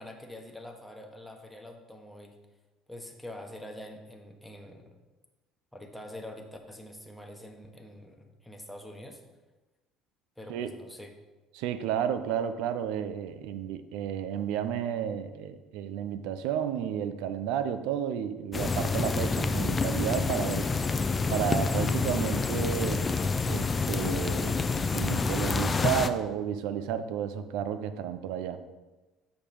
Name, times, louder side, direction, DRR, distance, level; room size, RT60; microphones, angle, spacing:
voice 1, 0.0-2.4 2.9-4.9 5.7-9.2 10.4-11.1, left 1 dB, 5° left, 2 dB, 1.2 m, -45 dB
voice 2, 11.5-20.7 21.3-23.1 23.4-28.6, right 9 dB, 75° right, 11 dB, 0.5 m, -32 dB
sound 1, 18.5-26.1, left 4 dB, 30° left, 0.5 m, -28 dB
7.0 x 5.1 x 4.5 m, 1.2 s
hypercardioid pair, 75°, 0 cm